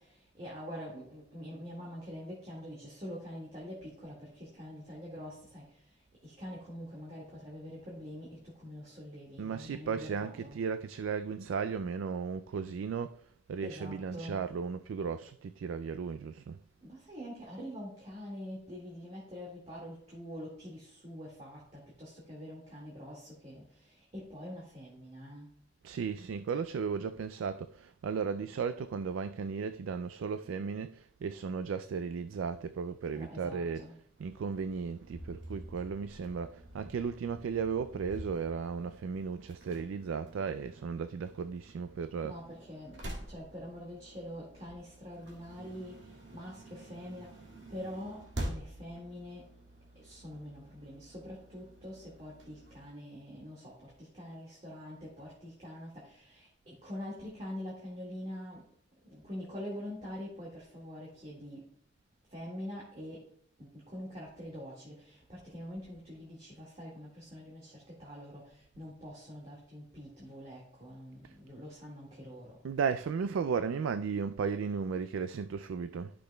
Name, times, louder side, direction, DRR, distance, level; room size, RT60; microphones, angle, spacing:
voice 1, 0.0-5.8 6.2-10.6 13.6-14.4 16.8-25.5 33.1-34.0 42.2-47.4 47.7-49.5 50.0-58.6 59.0-61.7 62.3-63.3 63.6-72.6, equal, 30° right, 1.9 m, -45 dB
voice 2, 9.4-13.2 13.5-16.6 25.8-33.9 34.2-42.4 72.6-76.1, right 6 dB, 90° right, 0.3 m, -35 dB
sound 1, 34.2-52.9, right 1 dB, 65° right, 2.1 m, -47 dB
13.0 x 6.1 x 2.3 m
head